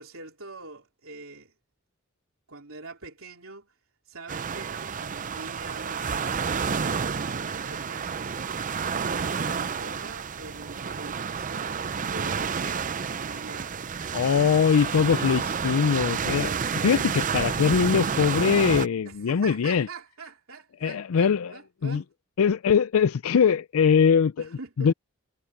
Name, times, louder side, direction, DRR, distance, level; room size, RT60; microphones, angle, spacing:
voice 1, 0.0-1.5 2.5-3.7 4.1-13.9 19.0-22.1 24.4-24.9, right 3 dB, 70° right, 3.5 m, -44 dB
sound 1, 4.3-18.9, right 6 dB, 35° right, 0.6 m, -30 dB
voice 2, 14.1-16.5 16.8-19.9 20.8-21.5 21.8-22.0 22.4-24.3 24.8-24.9, left 6 dB, 75° left, 0.4 m, -22 dB
head